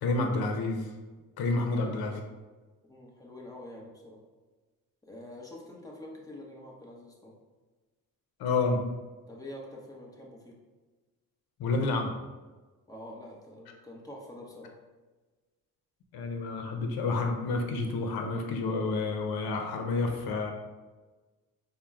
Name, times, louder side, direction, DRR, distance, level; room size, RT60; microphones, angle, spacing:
voice 1, 0.0-0.9 1.4-2.2 8.4-8.8 11.6-12.2 16.1-20.5, left 3 dB, 85° left, 4 dB, 0.6 m, -29 dB
voice 2, 1.6-2.0 2.8-4.2 5.0-7.4 9.3-10.6 12.9-14.8, left 1 dB, 10° left, -2 dB, 0.8 m, -46 dB
4.4 x 2.1 x 3.5 m, 1.3 s
cardioid pair, 85°, 36 cm